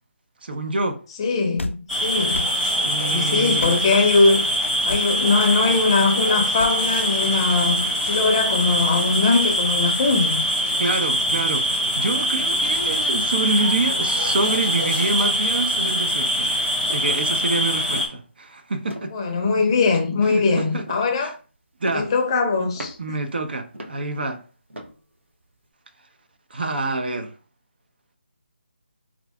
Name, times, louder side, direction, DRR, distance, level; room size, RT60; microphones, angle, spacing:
voice 1, 0.4-1.0 2.8-3.8 10.8-16.5 16.9-19.1 20.3-20.8 21.2-21.3 21.8-22.1 23.0-24.4 26.5-27.3, right 2 dB, 55° right, 0.6 m, -26 dB
voice 2, 1.2-2.5 3.1-4.4 4.8-10.5 19.1-21.3 21.9-23.0, left 4 dB, 25° left, 0.6 m, -21 dB
sound 1, 1.6-1.8 2.3-2.5 3.6-3.8 4.9-5.1 6.6-6.8, left 2 dB, 90° left, 0.4 m, -31 dB
sound 2, 1.9-18.1, equal, 5° right, 0.9 m, -23 dB
sound 3, 16.8-17.1 17.6-17.7 17.9-18.5 18.9-19.2 19.9-20.4 20.8-21.4 21.8-22.2 22.7-23.2 23.7-24.1 24.7-25.0 25.5-25.6, right 1 dB, 80° right, 0.9 m, -38 dB
4.6 x 2.5 x 3.3 m
figure-of-eight pair, 155°, 6 cm